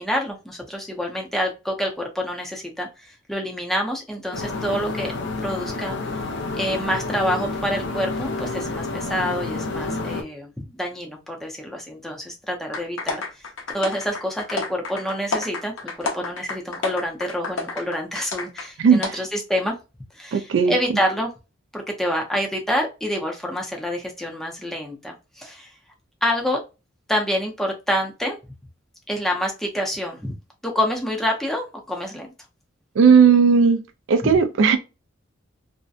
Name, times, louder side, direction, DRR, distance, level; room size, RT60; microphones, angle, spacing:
voice 1, 0.0-5.1 5.4-6.0 6.5-13.4 13.7-19.8 20.1-21.3 21.7-25.7 26.2-26.6 27.1-28.4 29.1-30.4 30.6-32.3 34.2-34.4, equal, ahead, 0.6 m, -27 dB
sound 1, 4.3-10.2, left 3 dB, 60° left, 0.5 m, -29 dB
sound 2, 12.7-18.7 19.0-19.1, left 4 dB, 85° left, 0.9 m, -30 dB
voice 2, 18.8-19.2 20.3-21.0 33.0-33.8 34.1-34.8, right 6 dB, 65° right, 0.3 m, -16 dB
2.6 x 2.1 x 2.3 m
head